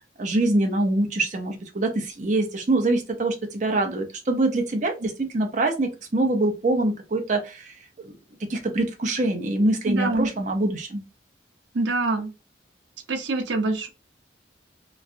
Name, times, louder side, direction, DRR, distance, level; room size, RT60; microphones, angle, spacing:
voice 1, 0.2-7.8 8.0-8.1 8.5-11.0, right 2 dB, 40° right, 0.6 m, -24 dB
voice 2, 9.9-10.3 11.7-12.3 13.1-13.9, right 2 dB, 90° right, 0.7 m, -25 dB
3.0 x 2.4 x 2.5 m
head